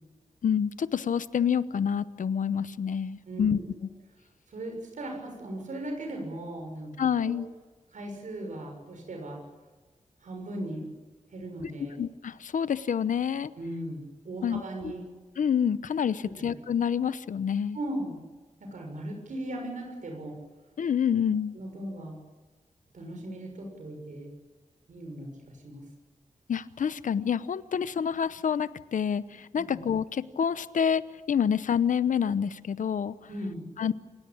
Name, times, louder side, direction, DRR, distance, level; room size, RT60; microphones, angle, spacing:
voice 1, 0.4-3.6 7.0-7.5 11.6-11.7 12.0-13.5 14.4-14.9 15.4-17.8 20.8-21.5 26.5-31.0 31.3-33.2 33.8-33.9, left 7 dB, 90° left, 16 dB, 0.8 m, -27 dB
voice 2, 3.3-3.6 4.5-6.9 7.2-7.4 7.9-9.4 10.2-10.8 11.3-12.0 13.6-15.0 16.2-16.5 17.7-18.2 18.6-20.4 21.5-22.2 22.9-24.3 24.9-25.8 29.6-29.8 33.3-33.6, right 1 dB, 80° right, 2 dB, 6.5 m, -38 dB
28.0 x 17.0 x 8.7 m, 1.3 s
wide cardioid pair, 125°, 13 cm